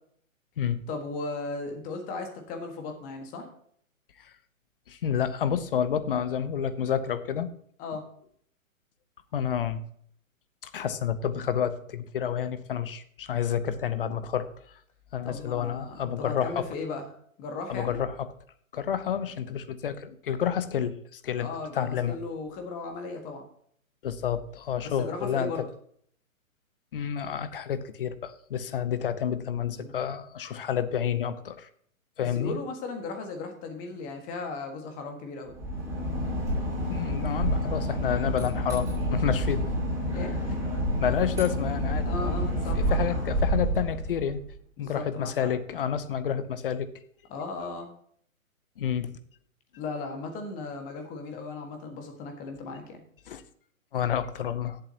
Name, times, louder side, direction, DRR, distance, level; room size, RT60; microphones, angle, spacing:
voice 1, 0.9-3.5 7.8-8.0 15.2-17.0 17.4-18.0 21.4-23.4 24.8-25.7 29.7-29.9 32.2-35.5 40.2-40.6 42.0-43.2 44.8-45.5 47.3-47.9 49.8-53.0, left 3 dB, 20° left, 4 dB, 1.7 m, -36 dB
voice 2, 4.9-7.5 9.3-9.8 10.6-14.5 15.1-16.6 17.7-18.3 18.7-21.5 21.7-22.2 24.0-25.7 26.9-31.7 32.2-32.6 36.9-39.7 40.1-40.3 41.0-42.4 42.9-44.4 44.8-46.9 48.8-49.1 53.3-53.4 53.9-54.8, left 8 dB, 40° left, 13 dB, 0.8 m, -29 dB
Boat Water vehicle / Engine, 35.5-44.5, equal, 5° right, 5.0 m, -28 dB
16.5 x 7.7 x 2.9 m, 0.63 s
hypercardioid pair, 140°, 42 cm